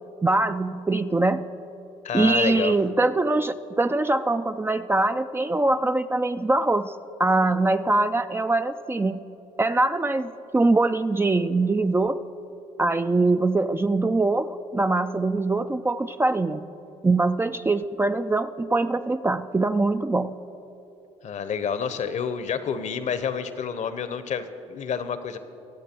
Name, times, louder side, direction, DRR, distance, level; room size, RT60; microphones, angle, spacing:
voice 1, 0.2-1.4 2.1-6.9 7.2-9.3 9.6-12.2 12.8-16.6 17.0-20.3, right 2 dB, 15° right, 9 dB, 0.4 m, -23 dB
voice 2, 2.0-2.7 21.2-25.4, left 7 dB, 50° left, 12 dB, 0.9 m, -29 dB
24.0 x 8.0 x 4.5 m, 2.9 s
hypercardioid pair, 60°, 16 cm